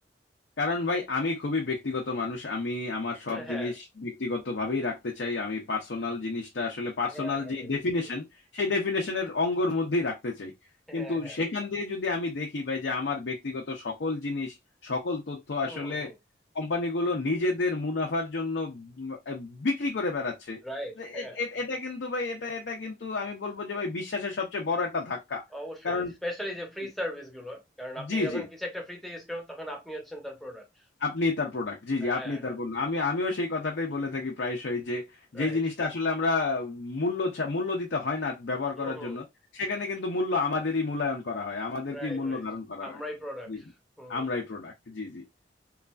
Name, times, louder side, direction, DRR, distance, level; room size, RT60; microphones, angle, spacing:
voice 1, 0.6-8.3 8.5-10.5 10.9-14.6 14.8-16.1 16.5-20.6 21.0-25.4 25.8-26.1 28.0-28.4 31.0-35.0 35.3-39.2 39.5-43.0 43.5-43.6 44.1-45.2, left 3 dB, 65° left, 0.5 m, -30 dB
voice 2, 3.3-3.7 7.1-7.7 8.0-8.1 10.9-11.4 15.6-16.1 20.6-21.4 25.5-30.7 32.0-32.6 35.3-35.6 38.8-39.2 41.9-42.4 42.8-43.7 44.0-44.3, equal, ahead, 0.7 m, -39 dB
3.1 x 2.4 x 2.3 m
head